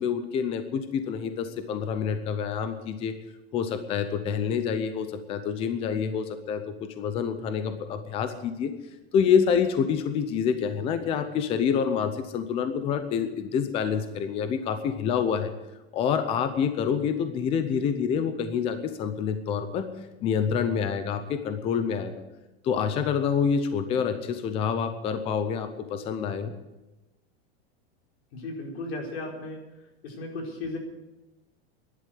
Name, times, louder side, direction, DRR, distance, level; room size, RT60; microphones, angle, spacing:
voice 1, 0.0-3.1 3.5-8.7 9.1-15.5 15.9-19.9 20.2-22.2 22.6-26.5, left 7 dB, 20° left, 9 dB, 0.6 m, -27 dB
voice 2, 28.3-29.6 30.0-30.8, left 2 dB, 85° left, 1 dB, 4.8 m, -35 dB
12.0 x 11.0 x 9.3 m, 1.0 s
supercardioid pair, 175°, 31 cm